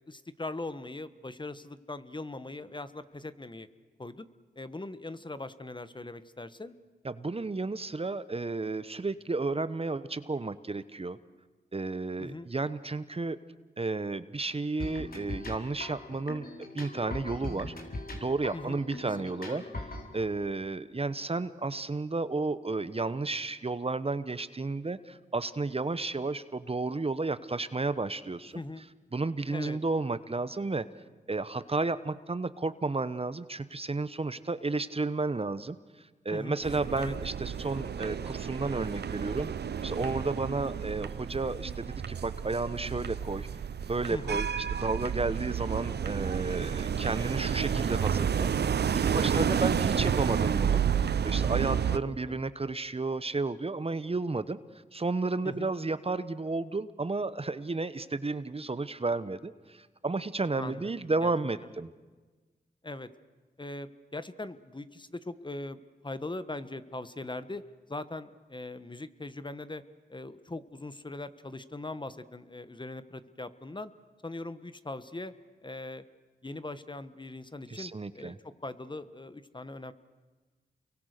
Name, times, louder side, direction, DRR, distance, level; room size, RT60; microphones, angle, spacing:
voice 1, 0.1-3.7 4.0-4.3 4.5-6.7 12.2-12.5 18.5-18.8 19.2-19.7 28.5-28.8 29.5-29.8 36.3-36.6 37.0-37.1 44.1-44.4 49.1-49.5 51.9-52.4 55.4-55.7 60.6-60.9 61.2-61.3 62.8-63.1 63.6-67.6 67.9-69.8 70.1-73.9 74.2-75.3 75.6-76.0 76.4-79.9, left 2 dB, 25° left, 13 dB, 1.3 m, -40 dB
voice 2, 7.0-11.2 11.7-13.4 13.8-16.5 16.7-17.7 18.2-19.6 20.1-28.5 29.1-30.8 31.3-35.8 36.2-39.5 39.8-43.5 43.9-48.5 48.9-50.8 51.2-54.6 54.9-61.9 77.7-78.4, right 3 dB, 35° right, 14 dB, 1.1 m, -32 dB
sound 1, 14.8-20.1, left 2 dB, 60° left, 4.3 m, -40 dB
sound 2, 36.6-52.0, right 7 dB, 75° right, 0.8 m, -30 dB
29.0 x 23.0 x 6.7 m, 1.3 s
cardioid pair, 45°, 17 cm